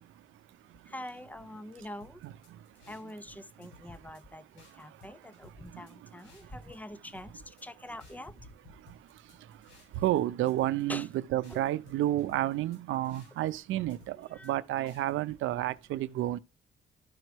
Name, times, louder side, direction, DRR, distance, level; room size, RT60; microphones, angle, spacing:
voice 1, 0.9-2.2 2.9-8.5 10.9-11.1 11.5-11.6 14.3-14.5, left 1 dB, 10° left, 0.7 m, -44 dB
sound 1, 2.0-3.3 3.6-4.2 4.6-6.8 7.0-7.7 8.0-10.2 10.5-11.1 11.4-13.6 13.9-14.5 14.9-15.6, left 3 dB, 85° left, 5.1 m, -59 dB
voice 2, 2.2-2.6 5.7-5.9 9.9-16.4, right 14 dB, 85° right, 0.6 m, -30 dB
12.5 x 4.6 x 3.0 m
cardioid pair, 95°, 20 cm